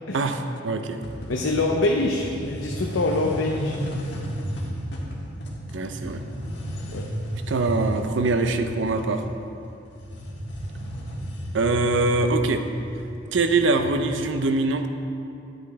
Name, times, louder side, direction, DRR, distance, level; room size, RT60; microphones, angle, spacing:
voice 1, 0.1-1.0 5.7-6.2 7.5-9.2 11.5-12.6 13.3-14.9, right 3 dB, 75° right, 7 dB, 0.6 m, -23 dB
sound 1, 1.0-14.3, equal, 65° left, 1.5 m, -34 dB
voice 2, 1.3-3.8 6.9-7.1, left 2 dB, 85° left, 0 dB, 0.6 m, -25 dB
10.0 x 8.7 x 3.4 m, 2.7 s
head